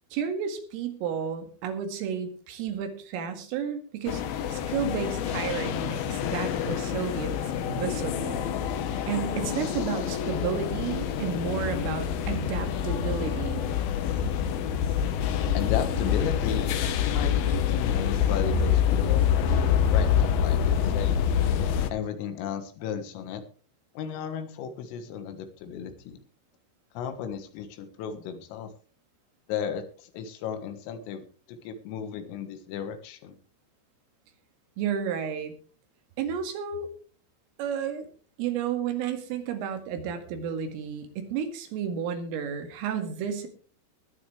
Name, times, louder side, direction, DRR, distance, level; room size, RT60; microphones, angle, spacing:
voice 1, 0.1-8.5 9.1-13.7 34.8-35.5 36.2-36.9 37.6-38.1 38.4-43.5, right 7 dB, 85° right, 6 dB, 4.6 m, -32 dB
sound 1, 4.1-21.9, left 8 dB, 70° left, 2.3 m, -26 dB
voice 2, 15.6-19.2 19.9-21.2 21.9-23.4 24.0-26.2 27.0-28.7 29.5-33.4, left 8 dB, 85° left, 8 dB, 4.1 m, -35 dB
20.5 x 9.9 x 3.3 m, 0.39 s
omnidirectional pair, 5.7 m